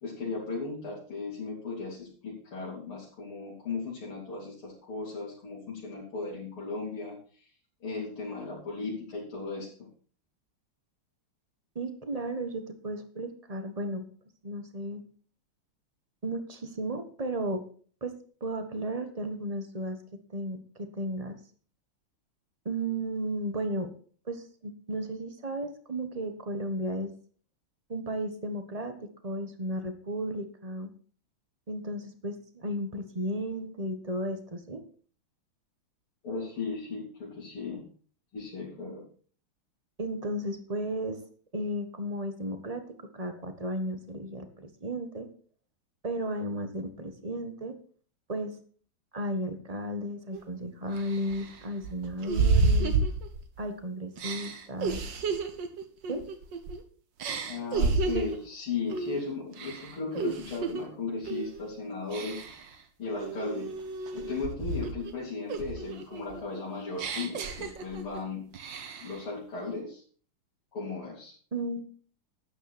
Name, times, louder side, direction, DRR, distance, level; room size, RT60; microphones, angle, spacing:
voice 1, 0.0-7.4 7.8-9.9 36.2-37.9 38.3-39.0 57.4-62.6 63.0-63.8 64.1-68.5 69.0-70.0 70.7-71.3, left 4 dB, 90° left, -7 dB, 4.5 m, -36 dB
voice 2, 11.7-14.1 14.4-15.0 16.2-17.6 18.0-18.1 18.4-21.4 22.6-23.9 24.3-27.1 27.9-30.9 31.7-34.8 40.0-41.2 41.5-42.8 43.1-45.3 46.0-47.7 48.3-48.5 49.1-52.9 53.6-55.0 56.1-56.2 71.5-71.8, right 1 dB, 20° right, 8 dB, 1.2 m, -34 dB
sound 1, 50.3-50.4 51.0-53.7 54.2-56.8 57.2-58.4 58.9-59.2 59.5-60.8 61.2-61.6 62.1-62.7 63.2-65.1 65.5-68.2 68.5-69.2, right 4 dB, 60° right, 1.9 m, -31 dB
13.0 x 9.5 x 4.3 m, 0.43 s
omnidirectional pair, 2.3 m